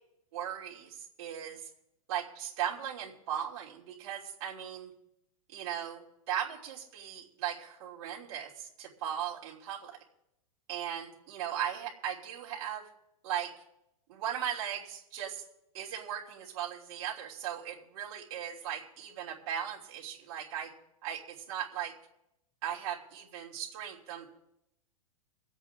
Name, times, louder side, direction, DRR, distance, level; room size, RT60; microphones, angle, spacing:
voice 1, 0.3-1.7 2.1-4.9 5.5-10.0 10.7-12.9 13.2-13.5 14.1-15.4 15.7-20.7 21.0-21.9 22.6-24.3, right 10 dB, 40° right, -5 dB, 3.0 m, -38 dB
24.5 x 8.3 x 3.7 m, 0.83 s
hypercardioid pair, 155°, 19 cm